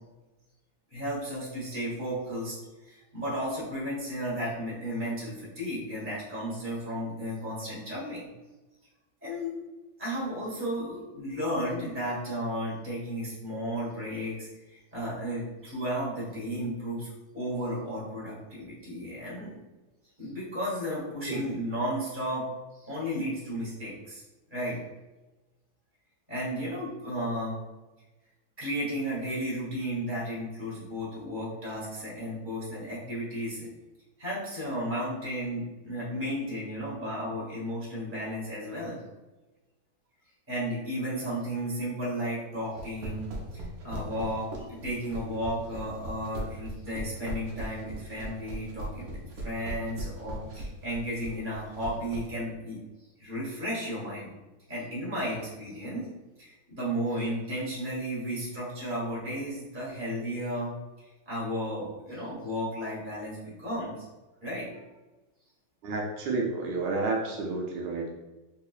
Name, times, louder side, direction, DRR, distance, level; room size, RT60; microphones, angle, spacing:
voice 1, 0.9-2.6 2.8-8.3 9.2-9.6 10.0-17.1 17.3-19.6 20.2-22.5 22.7-24.2 24.5-24.8 26.3-27.6 28.6-33.7 34.2-39.0 40.5-52.8 53.2-54.3 54.7-56.1 56.4-60.7 61.0-64.1 64.4-64.7, equal, 10° right, -7 dB, 0.9 m, -34 dB
sound 1, 42.7-52.3, right 1 dB, 60° right, 1.0 m, -38 dB
voice 2, 65.8-68.1, right 3 dB, 80° right, 0 dB, 1.4 m, -30 dB
3.9 x 2.7 x 2.4 m, 1.1 s
omnidirectional pair, 2.3 m